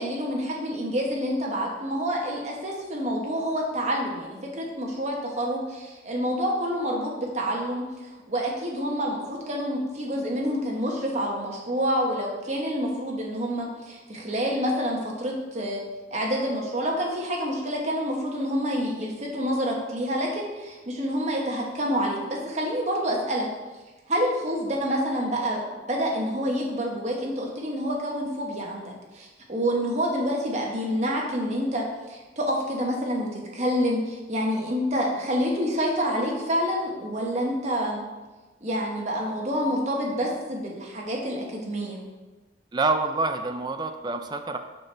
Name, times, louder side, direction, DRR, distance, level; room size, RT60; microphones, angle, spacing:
voice 1, 0.0-15.8 16.1-23.5 24.1-25.6 25.9-38.0 38.6-42.0, equal, 40° right, -1 dB, 1.2 m, -28 dB
voice 2, 42.7-44.6, right 3 dB, 25° right, 7 dB, 0.4 m, -27 dB
6.6 x 6.0 x 3.3 m, 1.2 s
head